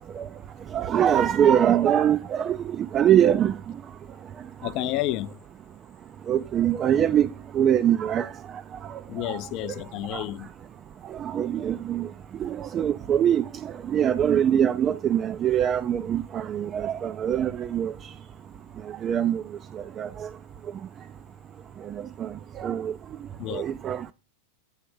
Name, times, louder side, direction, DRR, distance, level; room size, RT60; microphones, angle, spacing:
voice 1, 0.7-3.5 6.3-7.3 7.5-8.3 9.3-9.4 10.1-10.2 11.2-12.1 12.4-17.9 19.0-19.4 20.0-20.3 22.2-22.3 22.6-22.9 23.5-24.1, right 9 dB, 30° right, 0.3 m, -23 dB
voice 2, 4.6-5.3 9.1-10.5 23.4-23.6, left 15 dB, 40° left, 0.4 m, -30 dB
8.7 x 3.4 x 6.2 m
figure-of-eight pair, 90°, 0 cm